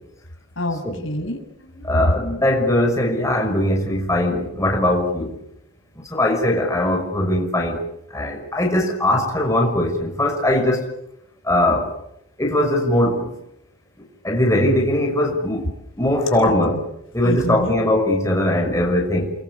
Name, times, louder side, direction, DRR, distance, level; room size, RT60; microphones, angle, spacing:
voice 1, 0.6-1.9 16.4-16.8 17.2-17.8, left 1 dB, 70° left, 4 dB, 6.6 m, -29 dB
voice 2, 1.8-5.3 6.0-7.8 8.1-10.9 11.4-11.9 12.4-13.3 14.0-15.7 16.0-16.8 17.1-19.3, left 1 dB, 15° left, 1 dB, 5.8 m, -20 dB
29.5 x 23.0 x 8.4 m, 0.79 s
head